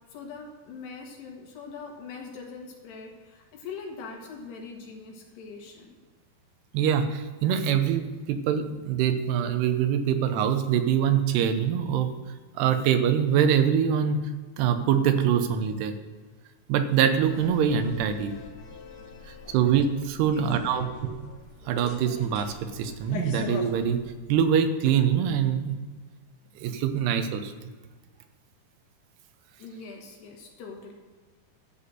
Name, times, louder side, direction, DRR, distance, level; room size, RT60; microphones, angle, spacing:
voice 1, 0.1-6.0 19.2-19.4 20.3-21.1 29.6-30.9, left 4 dB, 85° left, 0 dB, 3.9 m, -42 dB
voice 2, 6.7-12.1 12.6-14.2 14.6-15.9 16.7-18.3 19.5-21.2 21.7-24.0 24.3-25.7 26.6-27.5, right 8 dB, 85° right, 8 dB, 2.9 m, -24 dB
sound 1, 17.1-24.2, left 4 dB, 60° left, 1.8 m, -42 dB
12.5 x 4.3 x 7.9 m, 1.4 s
omnidirectional pair, 4.6 m